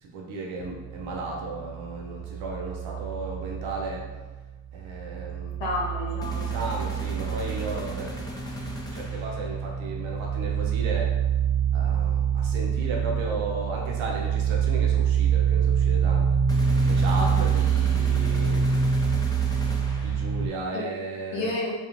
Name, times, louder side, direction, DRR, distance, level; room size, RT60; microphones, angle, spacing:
voice 1, 0.0-4.1 4.7-5.6 6.5-8.2 8.9-11.1 11.7-18.7 20.0-21.5, right 3 dB, 85° right, -1 dB, 0.6 m, -35 dB
sound 1, 0.6-4.4 4.7-20.5, right 7 dB, 45° right, 1.2 m, -26 dB
voice 2, 5.6-6.5 17.2-17.5 20.7-20.8 21.3-21.7, left 2 dB, 70° left, -3 dB, 0.9 m, -30 dB
sound 2, 6.2-9.6 16.5-20.5, left 1 dB, 10° left, 0.6 m, -38 dB
2.4 x 2.4 x 2.9 m, 1.2 s
supercardioid pair, 40°, 46 cm